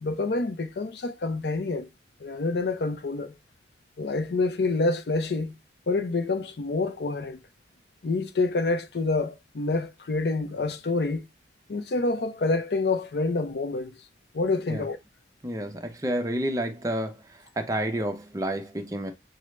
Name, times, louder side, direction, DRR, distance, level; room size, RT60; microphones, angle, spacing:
voice 1, 0.0-1.9 2.2-3.3 4.0-5.5 5.9-7.4 8.0-11.3 11.7-13.9 14.3-15.0, left 3 dB, 70° left, 0.5 m, -27 dB
voice 2, 15.4-17.2 17.6-19.1, right 1 dB, 20° right, 0.5 m, -29 dB
5.9 x 2.0 x 3.1 m
head